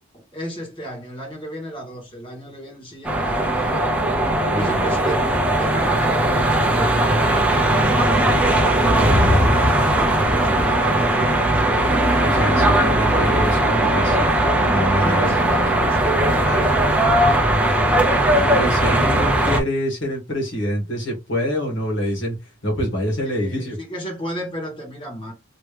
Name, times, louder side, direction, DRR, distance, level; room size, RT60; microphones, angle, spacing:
voice 1, 0.0-3.7 4.5-8.8 9.3-11.9 14.9-17.5 23.3-25.3, equal, 25° left, 1.8 m, -34 dB
sound 1, 3.0-19.6, right 1 dB, 5° right, 0.8 m, -18 dB
voice 2, 4.4-4.9 9.1-9.4 12.2-14.4 14.6-15.3 16.4-16.7 18.3-22.4 22.6-23.8, equal, 55° left, 1.7 m, -25 dB
3.1 x 3.1 x 3.3 m
head